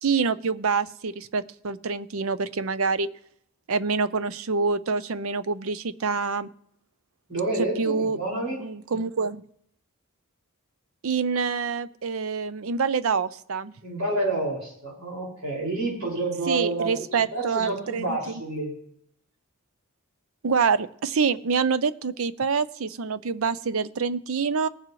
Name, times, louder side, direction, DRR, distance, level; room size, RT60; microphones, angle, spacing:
voice 1, 0.0-3.1 3.7-6.5 7.8-8.2 8.6-9.4 11.0-13.7 16.5-18.2 20.4-24.7, right 5 dB, 70° right, 15 dB, 0.6 m, -26 dB
voice 2, 7.3-8.6 13.8-17.0 17.3-18.7, right 2 dB, 90° right, -3 dB, 5.7 m, -29 dB
19.5 x 7.5 x 3.1 m, 0.69 s
head